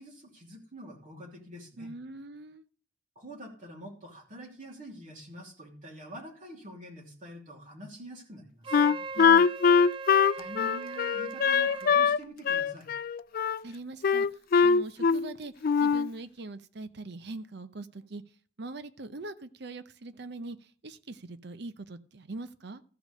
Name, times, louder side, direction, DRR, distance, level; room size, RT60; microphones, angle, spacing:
voice 1, 0.0-1.9 3.1-8.8 10.3-12.9, equal, 45° right, -1 dB, 3.0 m, -46 dB
voice 2, 1.8-2.7 8.8-9.5 13.6-18.2 18.6-22.8, right 2 dB, 65° right, 13 dB, 0.8 m, -42 dB
Wind instrument woodwind instrument, 8.6-12.0, right 4 dB, 30° right, 0.4 m, -39 dB
Wind instrument woodwind instrument 2, 8.7-12.2 12.4-13.6 14.0-15.3 15.6-16.1, left 6 dB, 55° left, 0.4 m, -22 dB
14.0 x 5.1 x 6.6 m, 0.44 s
head